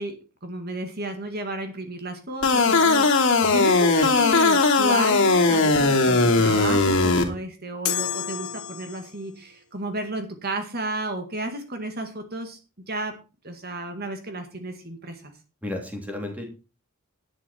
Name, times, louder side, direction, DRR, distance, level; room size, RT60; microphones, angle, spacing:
voice 1, 0.0-12.6 12.9-13.1 13.4-15.3, right 2 dB, 45° right, 6 dB, 1.9 m, -32 dB
sound 1, 2.4-7.2, left 3 dB, 60° left, 3.0 m, -19 dB
sound 2, 7.9-9.4, left 10 dB, 85° left, 1.3 m, -30 dB
voice 2, 15.6-16.4, left 1 dB, 5° right, 2 dB, 3.0 m, -33 dB
11.5 x 10.0 x 4.4 m, 0.32 s
head